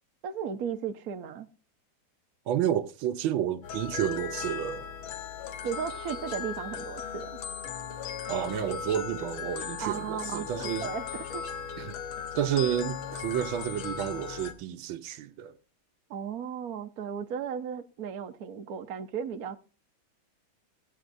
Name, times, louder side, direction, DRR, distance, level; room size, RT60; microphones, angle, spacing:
voice 1, 0.2-1.5 5.6-7.4 9.8-11.5 16.1-19.6, right 7 dB, 60° right, 1.1 m, -35 dB
voice 2, 2.5-4.9 8.3-10.9 11.8-11.9 12.3-15.5, right 10 dB, 80° right, 1.6 m, -30 dB
sound 1, 3.6-14.5, left 7 dB, 80° left, 1.8 m, -37 dB
17.0 x 8.4 x 2.6 m
omnidirectional pair, 2.2 m